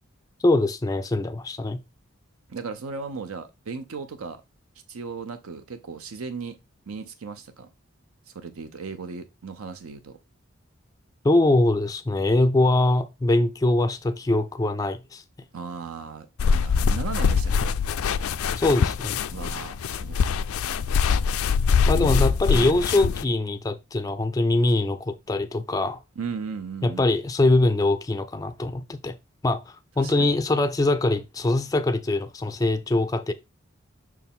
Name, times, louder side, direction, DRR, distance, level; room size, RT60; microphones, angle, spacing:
voice 1, 0.4-1.8 11.2-15.2 18.6-19.2 21.9-26.0 26.8-29.1 29.4-33.3, left 2 dB, 15° left, 0.3 m, -23 dB
voice 2, 2.5-4.4 4.9-6.6 6.9-7.7 8.3-10.2 15.5-17.7 19.3-20.2 21.9-22.8 26.2-27.1 30.0-30.3, right 5 dB, 85° right, 0.6 m, -36 dB
sound 1, 16.4-23.2, left 6 dB, 85° left, 0.4 m, -23 dB
6.0 x 4.6 x 3.5 m
head